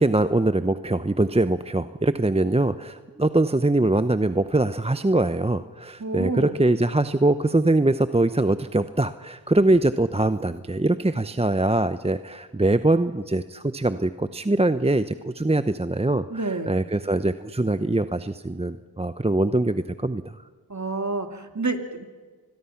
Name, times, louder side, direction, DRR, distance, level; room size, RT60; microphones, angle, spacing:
voice 1, 0.0-20.4, right 2 dB, 15° right, 11 dB, 0.8 m, -23 dB
voice 2, 6.0-6.6 16.3-16.8 20.7-22.1, right 3 dB, 40° right, 6 dB, 2.5 m, -29 dB
26.5 x 21.5 x 5.9 m, 1.5 s
cardioid pair, 40°, 44 cm